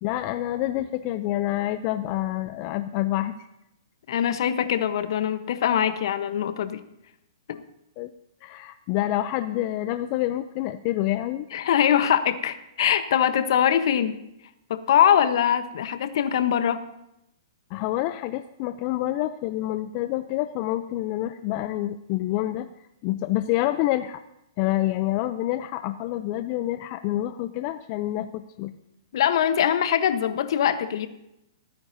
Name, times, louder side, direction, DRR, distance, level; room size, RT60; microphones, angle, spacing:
voice 1, 0.0-3.4 8.0-8.1 8.4-11.5 17.7-22.7 23.0-24.2 24.6-28.7, left 15 dB, 40° left, 10 dB, 0.5 m, -27 dB
voice 2, 4.1-6.8 7.5-7.6 11.5-14.2 14.7-16.8 29.1-31.1, left 9 dB, 60° left, 11 dB, 1.0 m, -22 dB
29.0 x 9.6 x 2.7 m, 0.84 s
hypercardioid pair, 125°, 3 cm